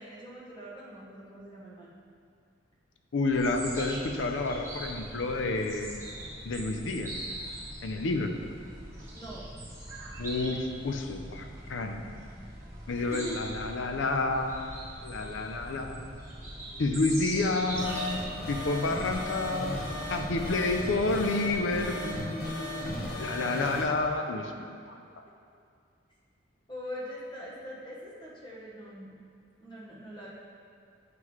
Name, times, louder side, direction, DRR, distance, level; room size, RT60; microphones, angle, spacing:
voice 1, 0.0-2.0 9.1-9.5 12.9-13.4 26.7-29.1 29.6-30.3, equal, 25° left, -5 dB, 1.0 m, -43 dB
voice 2, 3.1-6.0 6.4-7.1 7.8-8.3 10.2-12.0 12.9-16.1 16.8-19.8 20.1-25.0, left 2 dB, 80° left, 5 dB, 0.5 m, -30 dB
sound 1, 3.3-21.3, right 1 dB, 15° right, 1.3 m, -42 dB
sound 2, 17.7-23.8, left 1 dB, 55° left, 1.1 m, -36 dB
7.6 x 5.7 x 3.1 m, 2.3 s
head